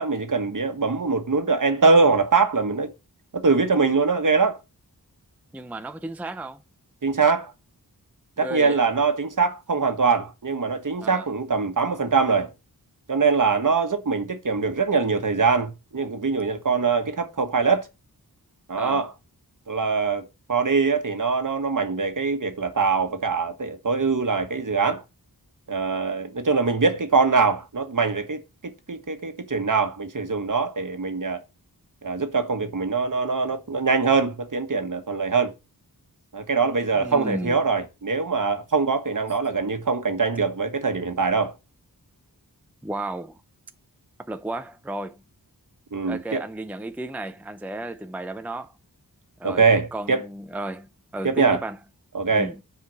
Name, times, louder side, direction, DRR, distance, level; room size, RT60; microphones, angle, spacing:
voice 1, 0.0-2.9 3.3-4.6 7.0-7.5 8.4-12.5 13.1-17.9 18.7-19.1 19.7-25.0 25.7-31.4 32.0-35.5 36.3-41.5 45.9-46.4 49.4-50.2 51.2-51.6 52.1-52.5, right 4 dB, 55° right, 1.4 m, -23 dB
voice 2, 5.5-6.6 8.4-8.8 11.0-11.3 18.8-19.1 36.9-37.6 42.8-43.4 44.2-45.2 46.0-48.7 49.4-49.6 49.9-51.8 52.3-52.6, right 1 dB, 5° right, 0.6 m, -33 dB
7.8 x 4.9 x 6.9 m
wide cardioid pair, 80°, 38 cm